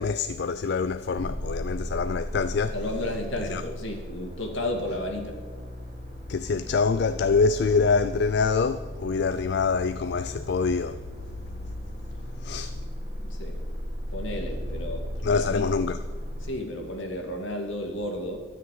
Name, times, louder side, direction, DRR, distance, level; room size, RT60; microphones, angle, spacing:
voice 1, 0.0-2.8 3.5-3.6 6.3-11.0 12.4-12.8 15.2-16.0, left 4 dB, 55° left, 0.4 m, -25 dB
sound 1, 1.1-16.5, equal, 30° right, 4.0 m, -36 dB
voice 2, 2.7-5.4 13.2-13.6 14.1-15.7 16.4-18.5, left 1 dB, 70° left, 2.2 m, -33 dB
12.5 x 6.6 x 9.2 m
head